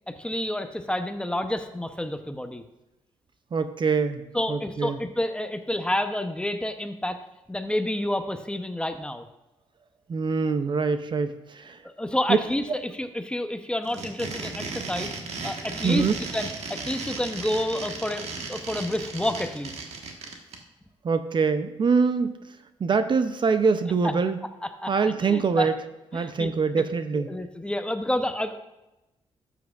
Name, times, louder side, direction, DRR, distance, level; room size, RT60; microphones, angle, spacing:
voice 1, 0.1-2.6 4.3-7.2 7.5-9.2 11.8-15.1 15.4-19.8 24.0-24.1 24.8-25.7 26.1-26.5 26.8-26.9 27.1-28.6, left 1 dB, 10° left, 8 dB, 0.8 m, -29 dB
voice 2, 3.5-5.0 10.1-11.8 12.3-12.4 15.8-16.1 21.0-22.5 22.8-24.4 24.9-25.7 26.1-27.3, right 5 dB, 45° right, 10 dB, 0.6 m, -24 dB
sound 1, 13.8-20.6, right 4 dB, 70° right, 1.5 m, -35 dB
12.5 x 8.4 x 2.5 m, 0.96 s
cardioid pair, 75°, 11 cm